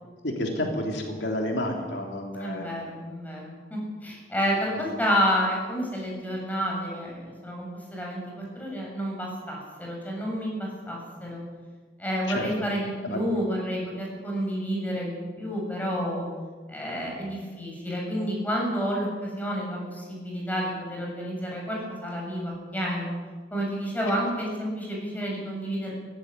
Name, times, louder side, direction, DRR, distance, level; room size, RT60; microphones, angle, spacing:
voice 1, 0.2-2.8 4.8-4.9 12.3-12.5 13.0-13.2 24.1-24.2, left 1 dB, 85° left, 1 dB, 3.3 m, -30 dB
voice 2, 2.4-11.4 12.0-16.3 16.7-23.1 23.5-25.9, equal, 10° left, -2 dB, 7.3 m, -30 dB
17.5 x 15.5 x 9.8 m, 1.5 s
head